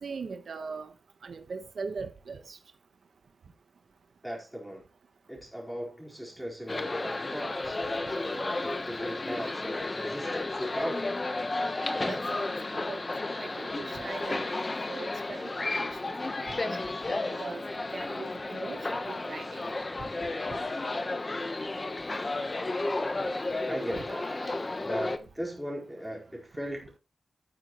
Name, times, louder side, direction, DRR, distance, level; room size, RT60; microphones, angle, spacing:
voice 1, 0.0-0.9 1.2-2.6 12.1-13.0 13.4-15.7 16.0-16.1 16.4-16.6 17.3-17.6 17.9-19.7 23.9-24.7, right 4 dB, 65° right, 1.3 m, -41 dB
voice 2, 4.2-4.8 5.3-11.1 23.7-24.3 24.8-27.0, equal, ahead, 4.5 m, -38 dB
sound 1, 6.7-25.2, left 2 dB, 25° left, 1.1 m, -33 dB
12.5 x 9.5 x 3.1 m
wide cardioid pair, 150°, 0 cm